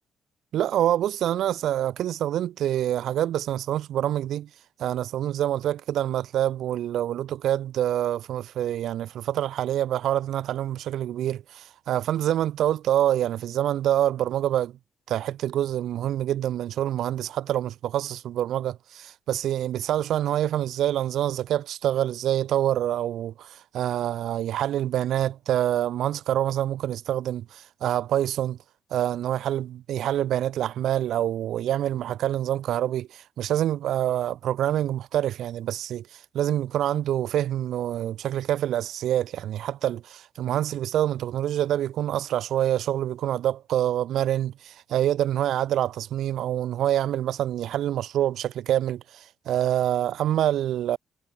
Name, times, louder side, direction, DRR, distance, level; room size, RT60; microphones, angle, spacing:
voice 1, 0.5-4.5 4.8-14.8 15.1-28.6 28.9-51.0, right 11 dB, 75° right, 3.1 m, -26 dB
cardioid pair, 90°, 0 cm